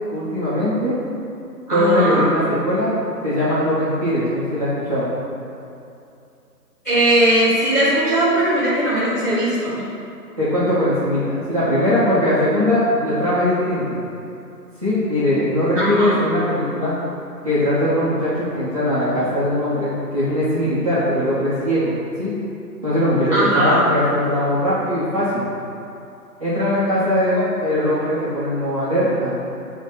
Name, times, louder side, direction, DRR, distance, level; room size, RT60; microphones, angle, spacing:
voice 1, 0.1-1.0 1.7-5.1 10.4-14.0 14.8-17.0 17.4-21.9 22.2-22.3 22.8-25.4 26.4-29.4, left 1 dB, 20° right, -13 dB, 0.8 m, -20 dB
voice 2, 1.7-2.3 6.8-9.8 15.7-16.2 23.3-23.8, right 1 dB, 10° left, -17 dB, 1.1 m, -19 dB
6.2 x 3.1 x 5.6 m, 2.6 s
hypercardioid pair, 170°, 49 cm